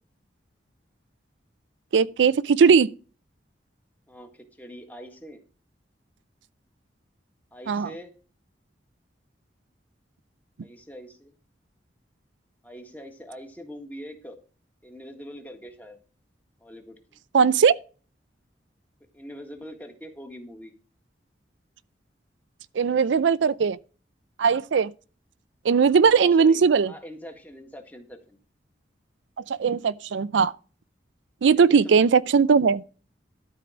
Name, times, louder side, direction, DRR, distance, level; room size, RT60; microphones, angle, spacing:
voice 1, 1.9-2.9 7.7-7.9 17.3-17.7 22.7-23.8 24.4-24.9 25.6-26.9 29.5-30.5 31.4-32.8, right 6 dB, 80° right, 0.4 m, -19 dB
voice 2, 4.1-5.4 7.5-8.1 10.6-11.3 12.6-14.4 14.8-16.0 16.6-17.2 19.1-20.7 26.1-28.4 31.5-32.1, equal, 10° left, 1.6 m, -43 dB
12.5 x 4.7 x 6.1 m
head